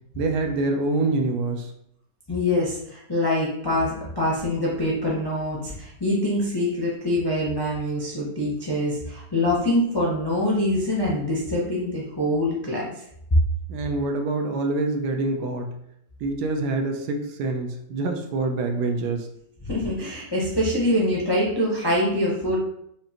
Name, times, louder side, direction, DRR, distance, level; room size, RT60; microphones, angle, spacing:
voice 1, 0.2-1.7 13.7-15.7 16.2-19.3, right 3 dB, 75° right, 4 dB, 1.1 m, -26 dB
voice 2, 2.3-12.8 19.6-22.6, left 1 dB, 40° left, -5 dB, 0.3 m, -24 dB
5.1 x 2.5 x 2.8 m, 0.75 s
omnidirectional pair, 1.8 m